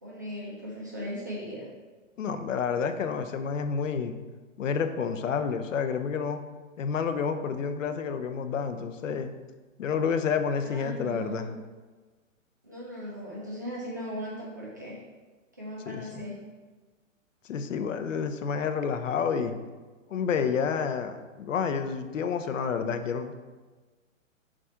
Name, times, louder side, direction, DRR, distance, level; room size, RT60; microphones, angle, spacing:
voice 1, 0.0-1.7 10.6-11.5 12.6-15.0 15.6-16.4, equal, 15° right, -6 dB, 0.5 m, -38 dB
voice 2, 2.2-4.2 4.6-6.4 6.8-9.3 9.8-11.5 15.9-16.0 17.5-19.5 20.1-23.3, left 6 dB, 70° left, 8 dB, 0.7 m, -29 dB
7.3 x 2.5 x 5.5 m, 1.3 s
hypercardioid pair, 175°, 40 cm